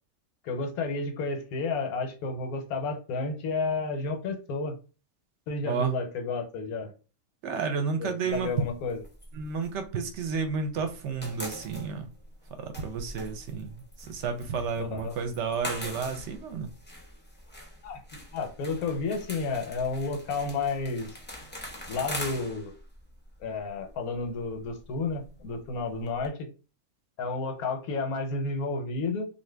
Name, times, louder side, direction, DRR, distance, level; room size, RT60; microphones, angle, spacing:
voice 1, 0.4-4.7 5.5-6.9 8.0-9.0 14.8-15.2 17.8-21.2 21.9-22.7 23.4-26.5 27.2-29.3, left 3 dB, 90° left, 1.2 m, -31 dB
voice 2, 7.4-8.5 9.3-12.1 12.6-16.7, right 5 dB, 60° right, 0.8 m, -31 dB
sound 1, 8.3-10.6 10.8-26.3, equal, 15° left, 0.3 m, -43 dB
2.8 x 2.5 x 3.3 m
omnidirectional pair, 1.5 m